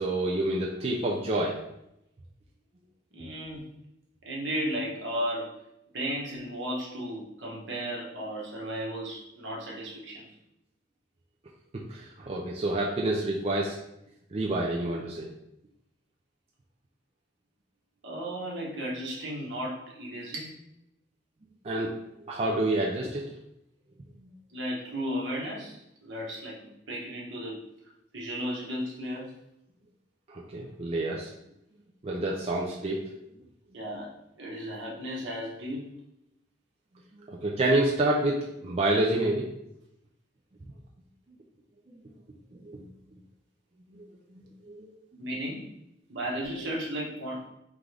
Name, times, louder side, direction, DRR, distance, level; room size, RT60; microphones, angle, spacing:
voice 1, 0.0-1.6 11.9-13.8 14.3-15.3 21.6-21.9 22.2-23.3 24.2-24.3 30.3-31.3 32.0-33.0 37.3-39.5 41.9-42.0 42.6-42.9 43.9-44.0 44.3-44.9, right 1 dB, 30° right, -3 dB, 0.4 m, -28 dB
voice 2, 3.1-3.6 4.2-5.5 5.9-10.2 18.0-20.5 24.5-27.6 28.1-29.3 33.7-34.1 34.4-35.9 45.2-45.7 46.1-47.4, equal, 70° right, -3 dB, 1.1 m, -34 dB
3.7 x 3.6 x 3.3 m, 0.82 s
head